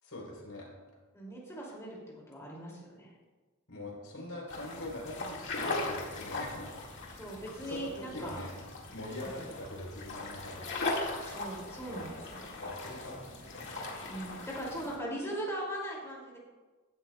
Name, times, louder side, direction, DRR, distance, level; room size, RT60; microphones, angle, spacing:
voice 1, 0.0-0.7 3.7-6.7 7.1-7.2 7.7-8.5 8.9-11.0 11.9-12.1 12.6-13.7, left 1 dB, 85° left, -2 dB, 3.6 m, -43 dB
voice 2, 1.1-2.0 2.3-3.1 7.1-8.4 9.2-9.5 11.2-12.4 14.1-16.4, right 1 dB, 15° left, -3 dB, 2.5 m, -40 dB
sound 1, 4.5-15.0, left 2 dB, 60° left, 1.9 m, -39 dB
15.5 x 11.5 x 2.3 m, 1.3 s
head